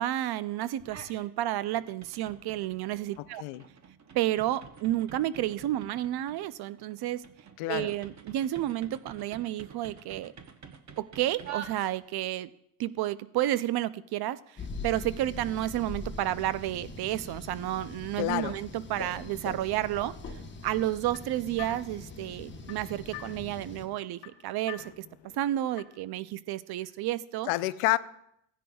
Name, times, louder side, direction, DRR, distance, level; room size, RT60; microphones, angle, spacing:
voice 1, 0.0-3.4 4.1-7.2 7.7-10.3 11.0-12.5 12.8-20.1 20.6-25.0 25.4-27.5, right 14 dB, 50° right, 0.5 m, -31 dB
sound 1, 0.8-1.3 1.6-12.3, right 7 dB, 35° right, 0.9 m, -47 dB
voice 2, 7.6-7.9 18.2-18.6 27.5-28.0, left 18 dB, 85° left, 0.6 m, -28 dB
sound 2, 14.6-23.9, left 2 dB, 20° left, 1.2 m, -42 dB
sound 3, 20.7-26.1, left 11 dB, 55° left, 1.0 m, -49 dB
16.0 x 10.0 x 2.3 m
cardioid pair, 125°, 50 cm